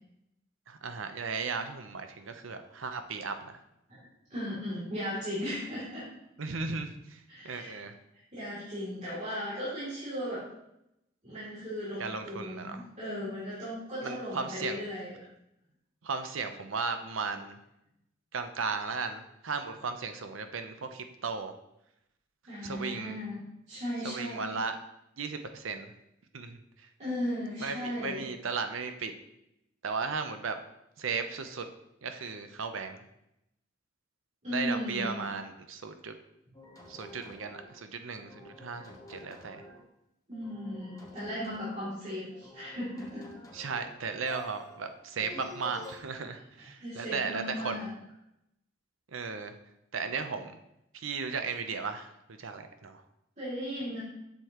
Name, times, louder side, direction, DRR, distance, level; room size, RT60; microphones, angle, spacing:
voice 1, 0.7-3.6 6.4-7.2 7.4-7.9 12.0-12.8 14.0-14.8 16.0-17.6 18.3-21.5 22.6-23.2 24.0-24.8 25.2-25.9 26.3-26.6 27.6-29.1 29.8-30.6 31.0-31.6 32.0-33.0 34.5-36.1 36.9-39.6 43.5-47.9 49.1-49.5 49.9-50.6 50.9-52.1 52.4-53.0, right 5 dB, 75° right, 8 dB, 0.7 m, -36 dB
voice 2, 4.3-6.0 7.3-7.8 8.3-10.4 11.2-15.2 22.5-23.4 23.7-24.6 27.0-28.3 34.4-35.3 40.3-43.3 46.6-47.9 53.4-54.0, equal, 35° right, -10 dB, 2.8 m, -36 dB
sound 1, 36.5-37.8 38.2-39.9 40.3-42.0 42.3-44.0 44.3-46.0, left 1 dB, 15° left, 1.1 m, -49 dB
7.9 x 6.9 x 3.0 m, 0.83 s
head